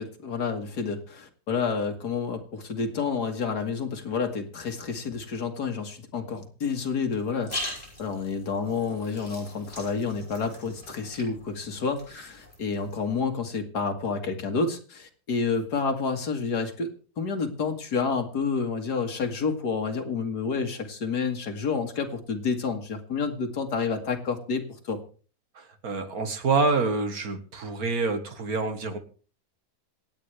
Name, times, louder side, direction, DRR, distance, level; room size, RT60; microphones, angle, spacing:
voice 1, 0.0-25.0, left 5 dB, 75° left, 5 dB, 2.3 m, -29 dB
sound 1, 7.1-13.2, left 1 dB, 25° left, 6.1 m, -41 dB
voice 2, 25.6-29.0, right 3 dB, 65° right, 7 dB, 2.0 m, -27 dB
26.5 x 9.0 x 3.4 m, 0.39 s
omnidirectional pair, 1.7 m